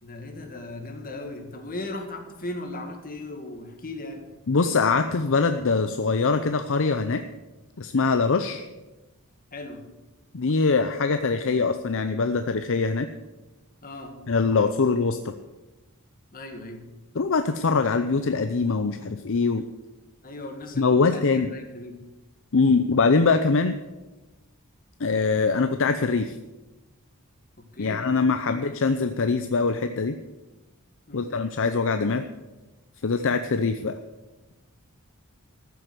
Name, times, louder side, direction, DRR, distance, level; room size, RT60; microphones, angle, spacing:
voice 1, 0.0-4.3 9.5-9.9 13.8-14.2 16.3-16.9 20.2-22.0 27.6-28.1 28.5-28.7 31.1-31.4, left 2 dB, 40° left, 4 dB, 2.1 m, -37 dB
voice 2, 4.5-7.2 7.8-8.6 10.3-13.1 14.3-15.3 17.2-19.6 20.8-21.5 22.5-23.8 25.0-26.4 27.8-30.1 31.1-32.2 33.0-33.9, left 4 dB, 60° left, 8 dB, 0.7 m, -23 dB
14.5 x 7.8 x 8.1 m, 1.1 s
head